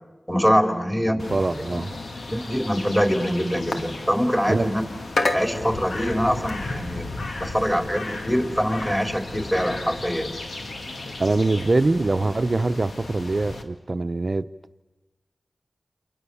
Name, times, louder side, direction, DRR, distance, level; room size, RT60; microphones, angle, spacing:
voice 1, 0.3-1.3 1.7-1.8 2.3-4.8 5.3-7.0 7.4-10.3, equal, 10° left, 4.1 m, -24 dB
voice 2, 1.0-1.9 4.5-4.7 11.2-14.5, right 2 dB, 50° right, 0.9 m, -23 dB
sound 1, 1.2-13.6, left 2 dB, 80° left, 2.1 m, -33 dB
30.0 x 27.5 x 7.2 m
cardioid pair, 50°, 0 cm